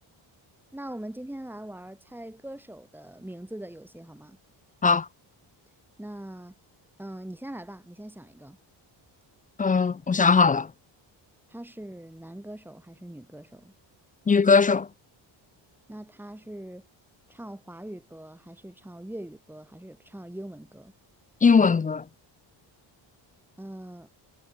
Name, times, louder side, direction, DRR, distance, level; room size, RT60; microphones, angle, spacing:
voice 1, 0.7-4.4 6.0-6.5 7.0-8.6 11.5-13.7 15.9-16.8 17.3-20.9 23.6-24.1, right 1 dB, 5° right, 4.8 m, -42 dB
voice 2, 9.6-10.7 14.3-14.9 21.4-22.0, left 5 dB, 20° left, 0.4 m, -20 dB
cardioid pair, 160°, 46 cm